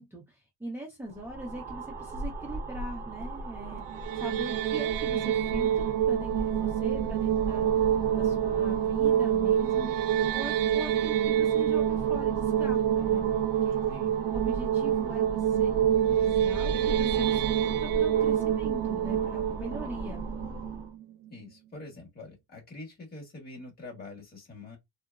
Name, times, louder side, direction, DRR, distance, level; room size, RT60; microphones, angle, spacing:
voice 1, 0.0-3.8 4.1-10.0 10.3-13.8 14.3-15.7 16.1-20.2, right 1 dB, 5° right, 0.6 m, -41 dB
sound 1, 1.1-20.9, right 3 dB, 25° right, 0.9 m, -38 dB
sound 2, 3.9-21.0, right 10 dB, 75° right, 0.5 m, -27 dB
voice 2, 13.9-14.2 21.3-24.8, left 2 dB, 30° left, 1.5 m, -45 dB
3.8 x 2.1 x 2.3 m
cardioid pair, 155°, 34 cm